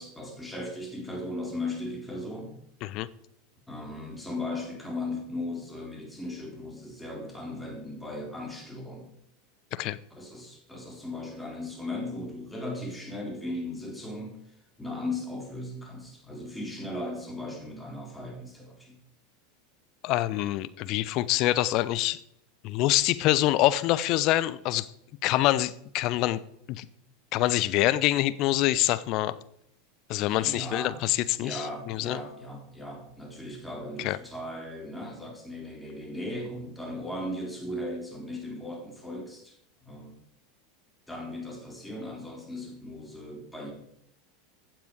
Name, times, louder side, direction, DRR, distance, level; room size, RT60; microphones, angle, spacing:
voice 1, 0.0-2.6 3.7-9.1 10.1-14.4 14.8-19.0 30.3-31.0 31.3-40.2 41.1-43.7, left 1 dB, 5° left, 1 dB, 4.0 m, -37 dB
voice 2, 20.0-22.2 22.6-24.9 25.2-26.4 26.7-26.9 27.3-29.4 30.1-32.2 34.0-34.2, left 15 dB, 45° left, 17 dB, 0.7 m, -25 dB
15.0 x 9.2 x 4.9 m, 0.73 s
figure-of-eight pair, 80°, 0 cm